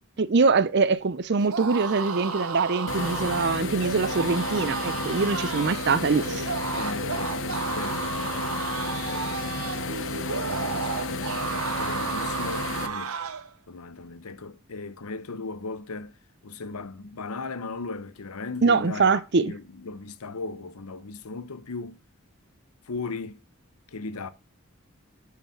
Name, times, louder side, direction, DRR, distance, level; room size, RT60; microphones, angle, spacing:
voice 1, 0.2-6.5 18.6-19.5, right 4 dB, 50° right, 0.5 m, -23 dB
sound 1, 1.4-13.5, right 5 dB, 75° right, 0.9 m, -32 dB
sound 2, 2.9-12.9, left 3 dB, 55° left, 0.9 m, -32 dB
voice 2, 6.7-8.6 9.0-9.8 10.2-13.1 13.7-16.2 16.4-22.0 22.9-23.4 23.9-24.3, left 3 dB, 85° left, 0.8 m, -37 dB
9.0 x 4.8 x 5.0 m
head